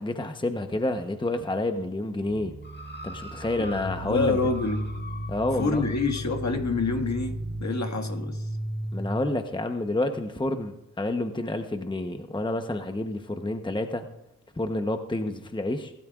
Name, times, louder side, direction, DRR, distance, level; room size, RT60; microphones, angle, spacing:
voice 1, 0.0-2.5 3.0-4.4 5.3-5.8 8.9-14.1 14.6-15.9, left 2 dB, 15° left, 6 dB, 0.9 m, -29 dB
sound 1, 2.3-7.6, right 5 dB, 80° right, 1.1 m, -42 dB
sound 2, 2.6-6.3 7.1-7.2, left 1 dB, 30° left, 1.9 m, -44 dB
sound 3, 3.6-9.2, left 1 dB, 75° left, 6.3 m, -34 dB
voice 2, 4.0-4.8 5.6-8.5, left 3 dB, 55° left, 4 dB, 1.8 m, -27 dB
25.0 x 12.5 x 2.4 m, 0.89 s
cardioid pair, 70°, 34 cm